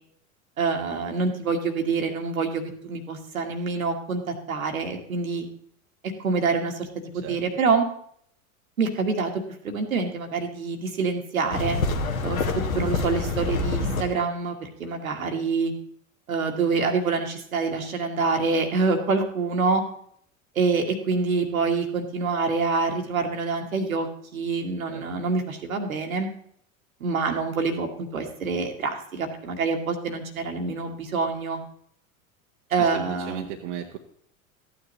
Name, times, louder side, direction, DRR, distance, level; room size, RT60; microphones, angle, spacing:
voice 1, 0.6-5.5 6.2-7.9 8.8-9.3 9.6-11.8 12.2-12.4 12.7-15.7 16.3-19.8 20.6-24.1 24.3-26.3 27.0-31.6 32.7-33.5, right 4 dB, 75° right, 4 dB, 1.7 m, -26 dB
sound 1, 11.5-14.0, left 3 dB, 75° left, 1.5 m, -26 dB
voice 2, 32.8-34.0, right 9 dB, 60° right, 3 dB, 1.1 m, -35 dB
14.0 x 9.3 x 3.1 m, 0.66 s
figure-of-eight pair, 85°, 42 cm